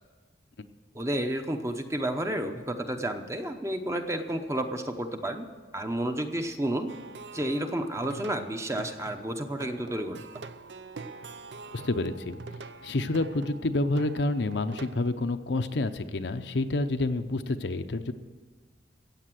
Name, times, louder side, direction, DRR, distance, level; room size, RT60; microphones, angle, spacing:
voice 1, 0.9-5.5 5.7-6.9 7.3-10.2, right 1 dB, 15° right, 6 dB, 0.8 m, -31 dB
Plucked string instrument, 6.9-15.1, right 3 dB, 70° right, 0.6 m, -44 dB
voice 2, 11.7-12.4 12.8-18.1, left 2 dB, 70° left, 8 dB, 0.7 m, -28 dB
15.0 x 8.5 x 7.7 m, 1.4 s
head